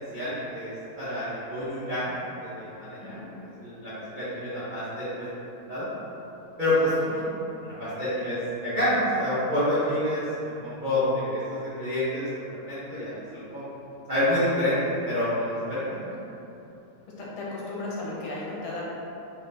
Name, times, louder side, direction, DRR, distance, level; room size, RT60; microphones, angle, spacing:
voice 1, 0.1-2.1 2.4-3.2 3.6-5.3 5.7-5.9 6.6-7.3 7.6-12.3 12.6-13.6 14.1-14.8 15.0-16.1, left 1 dB, 90° right, -13 dB, 0.4 m, -28 dB
voice 2, 6.7-7.4 17.2-18.9, left 2 dB, 75° left, -5 dB, 1.6 m, -36 dB
4.2 x 2.7 x 3.5 m, 2.9 s
omnidirectional pair, 2.4 m